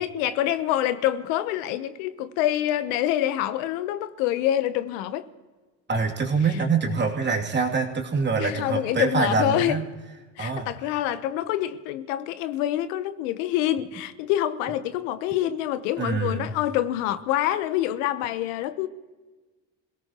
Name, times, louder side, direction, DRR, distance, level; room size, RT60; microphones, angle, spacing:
voice 1, 0.0-5.3 8.4-9.8 10.4-18.9, left 12 dB, 85° left, 1.0 m, -26 dB
voice 2, 5.9-9.8 10.4-10.7 16.0-16.5, right 4 dB, 30° right, 2.8 m, -25 dB
27.0 x 17.5 x 3.0 m
supercardioid pair, 105°, 38 cm